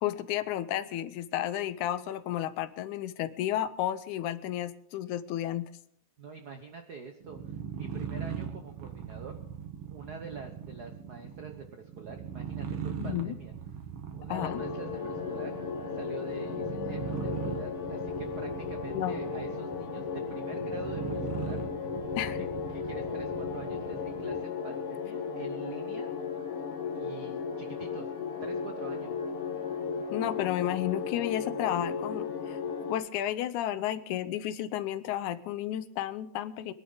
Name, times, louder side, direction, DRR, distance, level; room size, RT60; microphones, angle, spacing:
voice 1, 0.0-5.7 13.0-13.3 14.3-14.6 18.9-19.2 22.2-22.5 30.1-36.7, left 12 dB, 90° left, 13 dB, 2.2 m, -32 dB
voice 2, 6.2-9.4 9.9-13.5 14.1-15.5 15.9-21.6 22.4-22.5 22.7-26.1 26.9-28.1 28.4-29.1, right 5 dB, 75° right, 5 dB, 0.9 m, -45 dB
sound 1, 7.2-24.5, right 7 dB, 55° right, 2.2 m, -39 dB
sound 2, 14.4-32.9, left 6 dB, 55° left, 2.2 m, -35 dB
22.5 x 11.0 x 3.9 m, 0.67 s
omnidirectional pair, 3.4 m